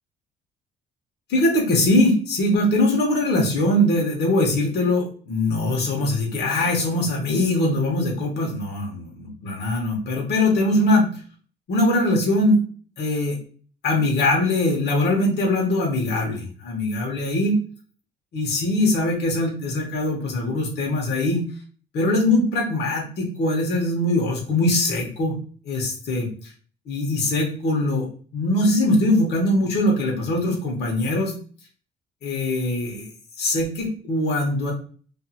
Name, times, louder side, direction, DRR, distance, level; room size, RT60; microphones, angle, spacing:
voice 1, 1.3-9.0 9.4-11.1 11.7-12.6 13.0-13.4 13.8-17.6 18.3-21.4 21.9-25.4 25.6-26.5 26.9-31.3 32.2-33.1 33.4-34.7, left 1 dB, 60° left, 0 dB, 1.0 m, -22 dB
2.7 x 2.6 x 2.4 m, 0.41 s
cardioid pair, 100°, 20 cm